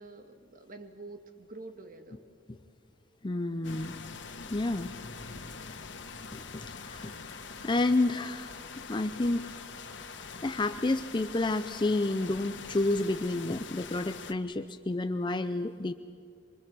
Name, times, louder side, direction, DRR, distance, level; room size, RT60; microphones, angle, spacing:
voice 1, 0.0-2.2, right 2 dB, 50° right, 6 dB, 1.7 m, -47 dB
voice 2, 3.2-4.0 4.5-4.9 6.3-7.4 7.6-8.6 8.9-9.5 10.4-15.9, left 2 dB, 25° left, 9 dB, 0.6 m, -30 dB
sound 1, 3.6-14.3, left 5 dB, 75° left, 1.6 m, -44 dB
28.0 x 24.5 x 6.2 m, 2.6 s
head